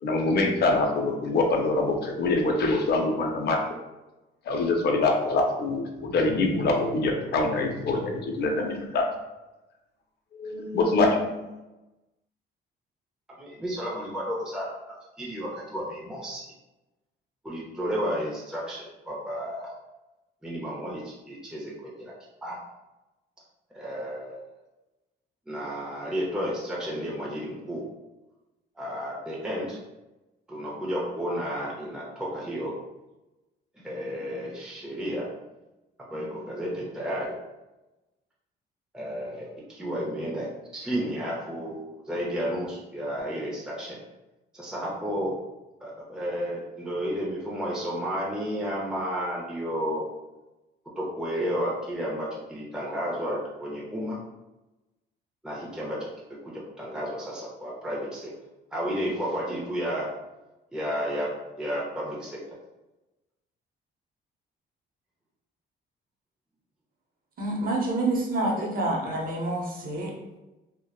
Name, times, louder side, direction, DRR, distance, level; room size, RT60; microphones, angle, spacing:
voice 1, 0.0-3.8 4.5-9.0 10.3-11.4, left 2 dB, 55° left, 2 dB, 0.5 m, -24 dB
voice 2, 13.4-14.7 15.2-16.4 17.4-19.7 20.4-21.7 22.0-22.1 22.4-22.6 23.7-24.4 25.5-27.8 28.8-29.8 30.5-32.7 33.8-35.3 36.1-37.3 38.9-40.5 40.7-44.0 44.5-45.3 45.8-50.0 51.0-54.2 55.4-58.3 58.7-60.1 60.7-61.3 61.6-62.4 68.6-68.7, equal, 5° right, -5 dB, 0.6 m, -32 dB
voice 3, 67.4-70.4, right 2 dB, 45° right, -2 dB, 0.7 m, -28 dB
2.7 x 2.1 x 2.3 m, 1.0 s
cardioid pair, 90°, 20 cm